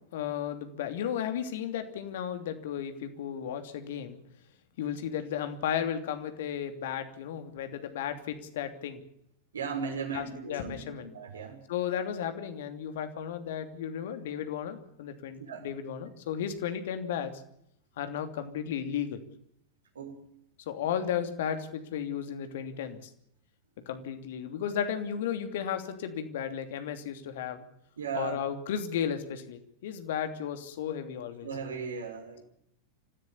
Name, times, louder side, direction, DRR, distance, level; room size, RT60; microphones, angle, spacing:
voice 1, 0.1-4.2 4.8-9.0 10.1-11.1 11.7-17.3 18.0-19.2 20.7-23.1 23.9-27.6 28.1-31.5, left 8 dB, 55° left, 8 dB, 2.8 m, -34 dB
voice 2, 9.5-11.6 15.4-15.7 19.9-20.2 28.0-28.4 31.4-32.4, right 6 dB, 70° right, 3 dB, 5.5 m, -37 dB
26.0 x 15.5 x 8.5 m, 0.76 s
figure-of-eight pair, 90°, 0 cm